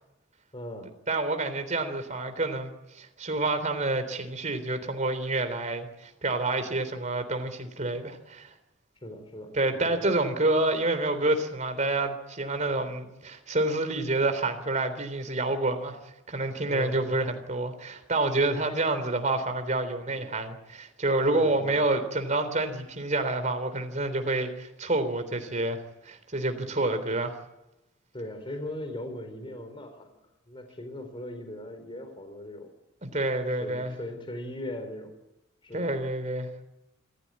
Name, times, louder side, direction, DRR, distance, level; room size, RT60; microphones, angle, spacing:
voice 1, 0.5-0.9 9.0-10.1 16.7-17.2 18.5-18.7 20.1-20.3 21.3-21.8 28.1-30.2 30.5-32.7 33.6-35.2 35.6-35.9, left 1 dB, 25° left, 7 dB, 4.0 m, -39 dB
voice 2, 1.1-8.5 9.5-16.0 16.3-27.4 33.0-33.9 35.7-36.5, right 2 dB, 40° right, 8 dB, 3.7 m, -28 dB
27.0 x 16.0 x 9.8 m, 0.95 s
head